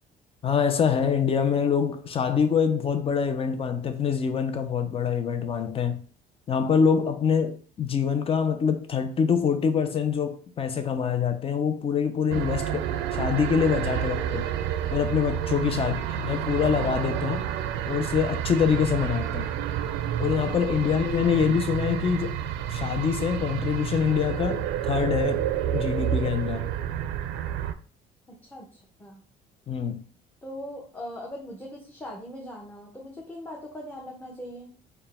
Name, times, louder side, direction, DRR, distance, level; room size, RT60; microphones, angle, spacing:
voice 1, 0.4-6.0 6.5-14.5 14.9-17.4 17.9-19.5 20.2-22.4 22.7-25.5 25.7-26.7 29.7-30.0, left 7 dB, 35° left, 0.5 m, -25 dB
sound 1, 12.3-27.7, right 10 dB, 90° right, 0.4 m, -29 dB
voice 2, 15.8-16.1 20.9-21.0 28.3-28.7 29.0-29.2 30.4-34.7, equal, 10° left, 0.9 m, -40 dB
4.4 x 2.2 x 3.4 m
cardioid pair, 110°, 17 cm